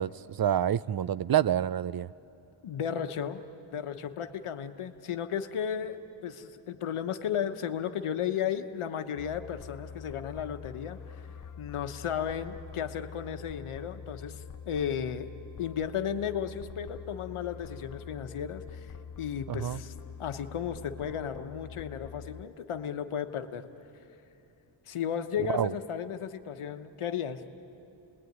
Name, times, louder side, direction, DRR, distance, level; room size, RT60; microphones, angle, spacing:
voice 1, 0.0-2.1 19.5-19.8 25.5-25.7, right 10 dB, 50° right, 18 dB, 0.5 m, -28 dB
voice 2, 2.6-3.4 3.7-11.0 11.6-15.3 15.6-19.9 20.2-23.7 24.9-27.4, left 8 dB, 85° left, 8 dB, 1.2 m, -34 dB
sound 1, 9.2-22.5, left 7 dB, 40° left, 0.6 m, -45 dB
28.5 x 21.0 x 9.4 m, 2.9 s
cardioid pair, 80°, 49 cm